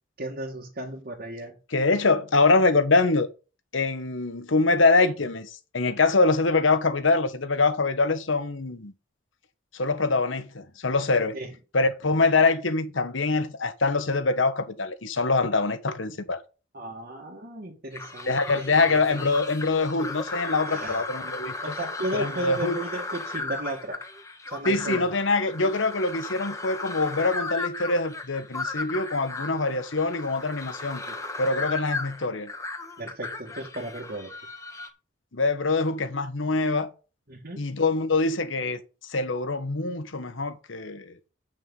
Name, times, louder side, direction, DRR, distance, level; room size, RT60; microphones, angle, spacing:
voice 1, 0.2-1.6 2.3-2.4 11.3-11.5 16.7-19.2 20.7-21.0 21.6-24.0 24.5-25.1 31.1-31.2 33.0-34.3 37.3-37.7, right 1 dB, 50° right, 1.9 m, -35 dB
voice 2, 1.7-3.3 3.7-8.9 9.7-11.4 11.7-16.4 18.3-21.5 22.1-22.7 24.6-31.0 31.4-32.5 35.3-36.9 37.6-41.1, left 3 dB, 85° left, 1.2 m, -24 dB
sound 1, 17.9-34.9, left 3 dB, 15° left, 1.1 m, -36 dB
8.5 x 6.4 x 5.5 m
head